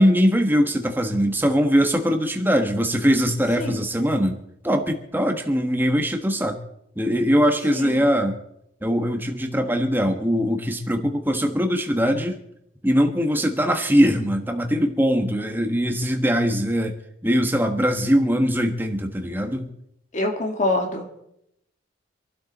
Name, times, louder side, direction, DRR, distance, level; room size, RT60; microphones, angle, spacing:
voice 1, 0.0-4.4 4.6-6.6 7.0-8.4 8.8-12.4 12.8-17.0 17.2-19.7, equal, 10° right, 5 dB, 1.4 m, -21 dB
voice 2, 7.7-8.0 20.1-21.2, left 2 dB, 40° left, 2 dB, 2.1 m, -25 dB
26.0 x 12.0 x 4.2 m, 0.79 s
head